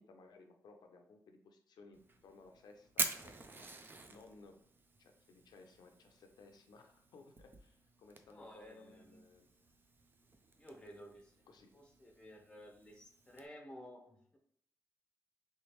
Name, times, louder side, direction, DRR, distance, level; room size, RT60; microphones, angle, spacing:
voice 1, 0.0-4.6 5.0-9.5 11.5-11.8, left 3 dB, 85° left, 4 dB, 0.5 m, -60 dB
Fire, 1.9-13.4, right 3 dB, 30° right, 0.4 m, -47 dB
voice 2, 8.3-9.2 10.6-11.3 11.7-14.4, equal, 15° left, 1 dB, 0.8 m, -54 dB
3.3 x 3.1 x 3.0 m, 0.66 s
wide cardioid pair, 110°, 7 cm